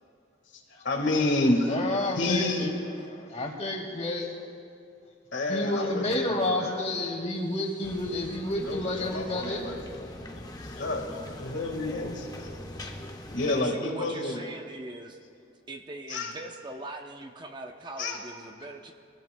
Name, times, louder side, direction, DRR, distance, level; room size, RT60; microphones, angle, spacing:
voice 1, 0.5-1.8 2.2-2.7 5.3-6.9 8.6-9.8 10.8-12.5 13.3-14.4 16.1-16.3 18.0-18.2, left 2 dB, 75° left, 2 dB, 1.7 m, -29 dB
voice 2, 1.7-2.7 3.0-4.5 5.5-9.8, left 2 dB, 35° left, 1 dB, 1.9 m, -30 dB
sound 1, 7.8-13.6, left 1 dB, 20° left, 0.8 m, -42 dB
voice 3, 13.4-15.2 15.7-18.9, right 2 dB, 25° right, 4 dB, 0.7 m, -41 dB
23.0 x 16.0 x 2.2 m, 2.3 s
head